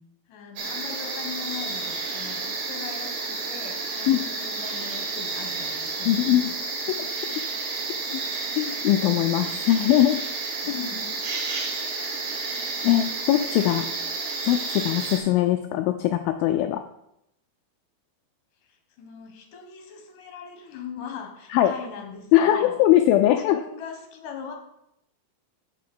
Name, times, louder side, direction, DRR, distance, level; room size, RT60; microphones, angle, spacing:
voice 1, 0.3-6.5 6.8-7.0 10.6-11.5 18.6-22.8 23.3-24.5, left 6 dB, 65° left, 3 dB, 2.9 m, -40 dB
sound 1, 0.6-15.2, right 3 dB, 90° right, 4.1 m, -31 dB
voice 2, 6.1-6.5 7.0-7.1 8.1-8.2 8.6-10.2 10.7-10.8 12.8-13.9 14.5-16.8 21.5-21.7 22.3-23.6, left 13 dB, 80° left, 7 dB, 2.3 m, -21 dB
7.4 x 6.1 x 7.7 m, 0.81 s
omnidirectional pair, 4.4 m